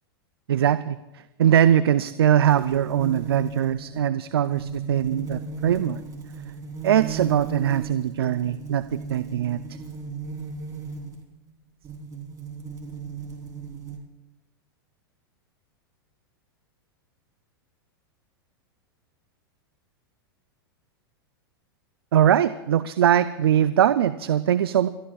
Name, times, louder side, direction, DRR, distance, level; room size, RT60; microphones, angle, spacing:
voice 1, 0.5-6.0 6.8-9.8 22.1-24.9, right 10 dB, 80° right, 13 dB, 0.5 m, -21 dB
sound 1, 2.4-11.3 11.8-14.0, right 5 dB, 30° right, 3.4 m, -36 dB
30.0 x 13.5 x 2.4 m, 1.0 s
hypercardioid pair, 105°, 13 cm